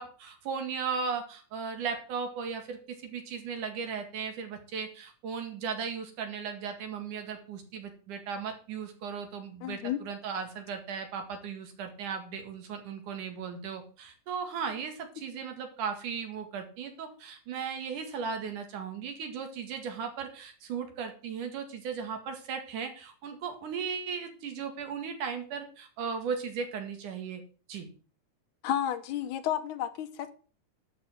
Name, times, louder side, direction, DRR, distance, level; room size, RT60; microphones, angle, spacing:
voice 1, 0.0-27.4 27.7-27.9, right 6 dB, 90° right, 5 dB, 3.5 m, -36 dB
voice 2, 9.6-10.0 28.6-30.3, left 10 dB, 80° left, 10 dB, 2.5 m, -31 dB
11.5 x 5.3 x 7.7 m, 0.39 s
omnidirectional pair, 3.5 m